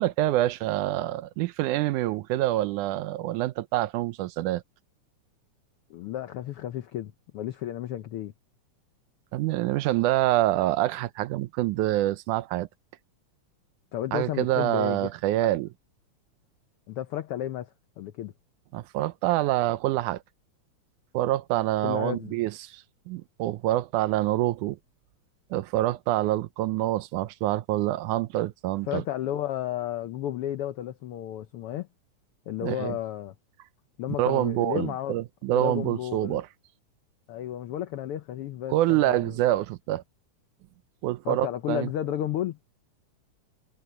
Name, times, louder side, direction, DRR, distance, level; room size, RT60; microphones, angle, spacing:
voice 1, 0.0-4.6 9.3-12.7 14.1-15.7 18.7-20.2 21.1-24.8 25.5-29.0 32.6-33.0 34.2-36.5 38.7-40.0 41.0-41.9, right 15 dB, 85° right, 2.2 m, -26 dB
voice 2, 5.9-8.3 13.9-15.1 15.4-15.5 16.9-18.3 21.8-22.3 28.9-31.9 32.5-33.3 34.0-35.2 35.5-36.4 37.3-39.4 41.2-42.6, left 12 dB, 80° left, 1.2 m, -33 dB
omnidirectional pair, 3.5 m